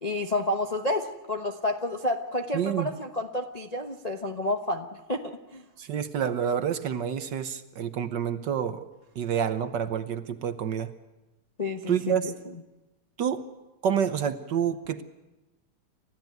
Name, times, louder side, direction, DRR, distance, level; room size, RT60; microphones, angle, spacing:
voice 1, 0.0-5.6 11.6-12.3, left 1 dB, 35° left, 4 dB, 0.6 m, -30 dB
voice 2, 2.5-2.9 5.8-8.8 9.1-10.9 11.9-12.3 13.2-13.4 13.8-15.0, right 8 dB, 60° right, 11 dB, 1.4 m, -28 dB
29.5 x 13.5 x 9.3 m, 1.1 s
omnidirectional pair, 2.4 m